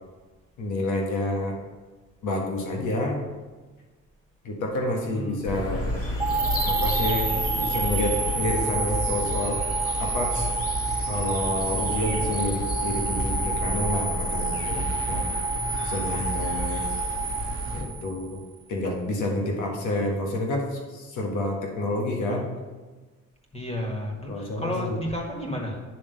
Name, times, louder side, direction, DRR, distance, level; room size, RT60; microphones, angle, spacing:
voice 1, 0.6-1.6 2.2-3.3 4.4-5.9 6.6-10.5 11.1-15.3 15.8-16.8 17.7-18.4 18.7-22.5 24.3-25.0, left 1 dB, 80° left, 0 dB, 1.6 m, -29 dB
voice 2, 5.0-5.7 14.6-15.1 16.1-16.4 23.5-25.8, equal, 20° left, 0 dB, 1.9 m, -33 dB
sound 1, 5.4-17.8, left 1 dB, 50° left, 2.0 m, -31 dB
sound 2, 6.2-18.4, right 4 dB, 10° right, 0.6 m, -29 dB
9.7 x 3.6 x 6.6 m, 1.3 s
cardioid pair, 90°, 30 cm